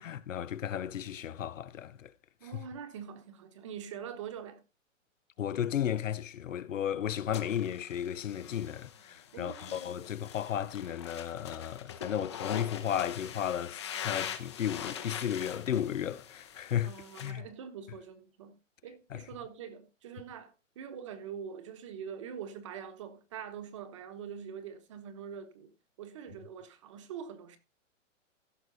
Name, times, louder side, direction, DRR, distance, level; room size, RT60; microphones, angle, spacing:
voice 1, 0.0-2.1 5.4-16.9 17.2-17.4 19.1-19.2, left 10 dB, 85° left, 1.0 m, -34 dB
voice 2, 2.4-4.6 9.3-10.1 16.8-25.7 26.0-27.6, right 7 dB, 25° right, 1.2 m, -44 dB
sound 1, 7.3-17.3, left 8 dB, 20° left, 0.9 m, -43 dB
15.5 x 6.5 x 3.9 m
hypercardioid pair, 180°, 38 cm